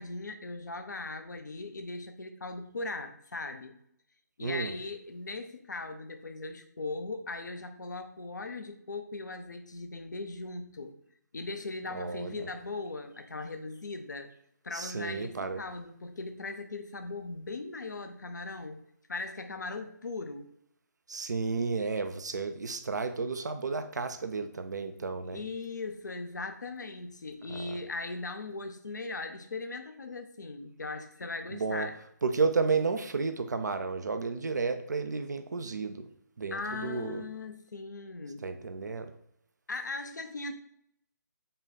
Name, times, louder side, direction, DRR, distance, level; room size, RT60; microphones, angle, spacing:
voice 1, 0.0-3.7 4.4-11.0 11.3-14.3 14.6-18.8 19.1-20.5 25.3-32.0 36.5-38.5 39.7-40.5, left 3 dB, 75° left, 7 dB, 0.6 m, -39 dB
voice 2, 4.4-4.7 11.9-12.5 14.7-15.6 21.1-25.4 27.5-27.8 31.5-31.9 32.2-36.1 36.4-37.2 38.4-39.1, right 4 dB, 70° right, 8 dB, 0.4 m, -32 dB
5.3 x 2.3 x 4.0 m, 0.71 s
figure-of-eight pair, 140°, 10 cm